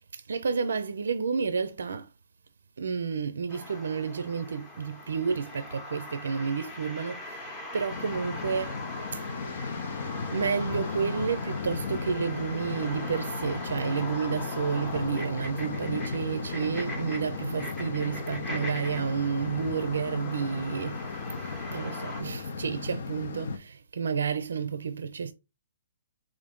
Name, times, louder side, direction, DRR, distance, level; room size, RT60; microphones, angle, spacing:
voice 1, 0.1-2.1 2.8-8.8 9.1-9.2 10.3-25.3, right 6 dB, 90° right, 0.4 m, -31 dB
sound 1, 3.5-22.2, left 2 dB, 10° left, 0.7 m, -41 dB
sound 2, 7.9-23.6, left 4 dB, 55° left, 0.6 m, -36 dB
3.7 x 2.5 x 3.5 m
hypercardioid pair, 170°, 0 cm